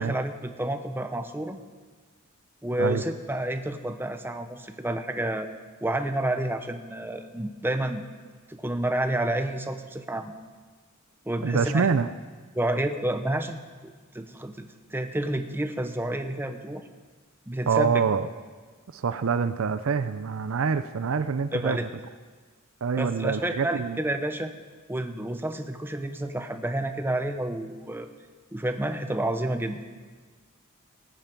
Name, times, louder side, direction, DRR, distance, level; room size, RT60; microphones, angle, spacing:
voice 1, 0.0-1.6 2.6-5.5 5.8-8.0 8.5-10.3 11.3-11.9 12.5-13.6 13.8-16.8 17.5-18.0 21.5-21.9 23.0-24.5 24.9-28.1 28.5-29.8, right 1 dB, 10° right, 7 dB, 0.8 m, -29 dB
voice 2, 11.4-12.1 17.7-18.3 18.9-21.8 22.8-24.0, right 5 dB, 65° right, 12 dB, 0.5 m, -25 dB
19.0 x 9.1 x 5.3 m, 1.4 s
head